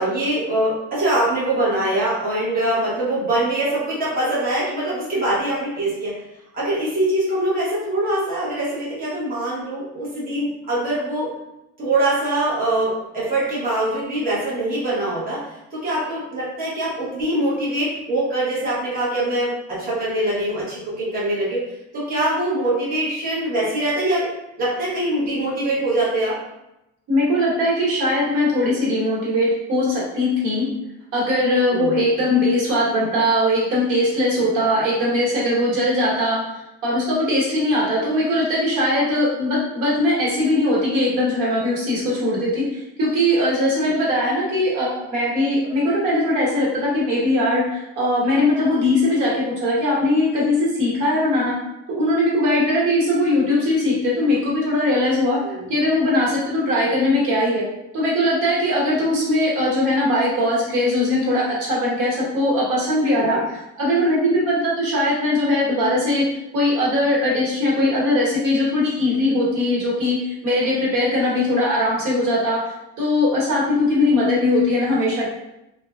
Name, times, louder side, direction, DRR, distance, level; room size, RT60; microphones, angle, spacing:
voice 1, 0.0-6.2 6.5-11.3 11.8-15.4 15.7-21.6 21.9-24.3 24.6-26.4 31.7-32.0 34.5-34.6 55.4-55.6 63.3-63.4, right 1 dB, 30° right, -8 dB, 0.9 m, -23 dB
voice 2, 27.1-30.6 31.1-36.4 36.8-51.5 51.9-55.4 55.7-57.6 57.9-66.3 66.5-70.2 70.4-72.6 73.0-75.3, left 1 dB, 90° right, -5 dB, 1.1 m, -20 dB
3.2 x 2.2 x 2.3 m, 0.90 s
cardioid pair, 170°, 30 cm